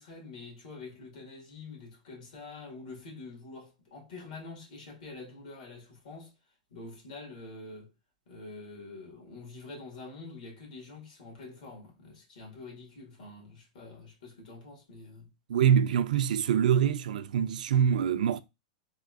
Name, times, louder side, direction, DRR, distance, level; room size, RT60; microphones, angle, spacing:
voice 1, 0.0-6.3 6.7-7.9 8.3-15.3, left 3 dB, 75° left, 1.7 m, -46 dB
voice 2, 15.5-18.4, right 8 dB, 85° right, 0.3 m, -25 dB
3.5 x 2.3 x 2.4 m
hypercardioid pair, 135°, 4 cm